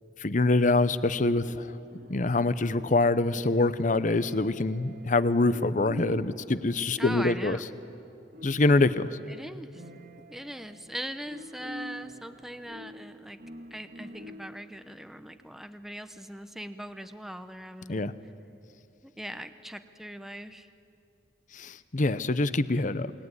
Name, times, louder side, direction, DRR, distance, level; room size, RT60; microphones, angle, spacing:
voice 1, 0.2-1.7 2.1-7.6 8.4-9.1 17.9-18.1 21.5-23.1, left 2 dB, 45° left, 14 dB, 0.8 m, -25 dB
sound 1, 1.2-14.8, equal, 50° right, 2.0 m, -47 dB
voice 2, 7.0-7.7 9.3-9.8 10.3-13.4 13.7-18.1 19.2-20.7, equal, ahead, 9 dB, 0.8 m, -40 dB
28.0 x 21.0 x 9.7 m, 2.6 s
head